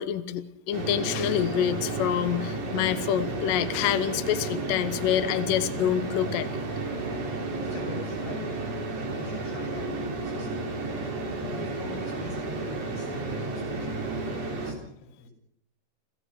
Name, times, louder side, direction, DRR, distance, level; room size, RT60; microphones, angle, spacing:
voice 1, 0.0-6.5, left 10 dB, 65° left, 11 dB, 2.5 m, -27 dB
sound 1, 0.7-14.7, right 2 dB, 50° right, 4.6 m, -32 dB
voice 2, 7.6-8.7 9.2-11.1 11.5-14.8 15.2-15.3, left 2 dB, 90° left, 1 dB, 8.9 m, -44 dB
29.0 x 16.0 x 6.3 m, 0.70 s
omnidirectional pair, 4.8 m